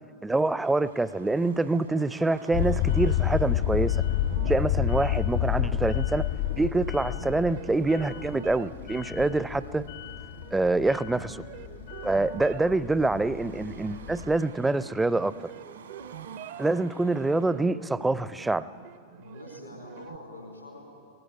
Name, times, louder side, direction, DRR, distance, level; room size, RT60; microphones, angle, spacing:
voice 1, 0.2-4.0 4.5-6.2 6.6-9.9 10.5-11.4 12.0-15.3 16.6-17.8 18.0-18.7, right 2 dB, 10° right, 17 dB, 0.5 m, -26 dB
Car passing by / Traffic noise roadway noise / Engine, 0.6-17.5, right 6 dB, 70° right, 1.5 m, -53 dB
sound 1, 2.5-14.4, left 11 dB, 60° left, 0.9 m, -30 dB
sound 2, 4.3-20.2, right 9 dB, 55° right, 0.6 m, -46 dB
voice 2, 17.2-17.7 19.2-20.8, left 2 dB, 90° left, 0 dB, 4.3 m, -45 dB
18.5 x 16.0 x 8.9 m, 2.4 s
figure-of-eight pair, 90°, 0 cm